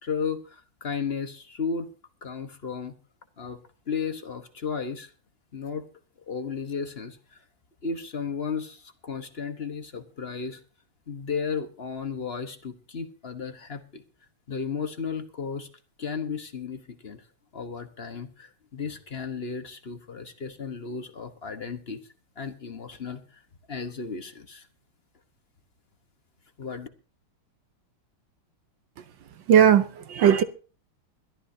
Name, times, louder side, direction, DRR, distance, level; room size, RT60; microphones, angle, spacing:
voice 1, 0.0-1.9 2.2-3.0 3.4-5.1 5.5-5.8 6.3-7.2 7.8-10.6 11.1-14.0 14.5-15.7 16.0-17.2 17.5-22.0 22.4-23.2 23.7-24.6 26.6-26.9, left 5 dB, 35° left, 1.1 m, -34 dB
voice 2, 29.5-30.4, right 9 dB, 65° right, 1.5 m, -18 dB
22.0 x 13.5 x 2.8 m
omnidirectional pair, 2.3 m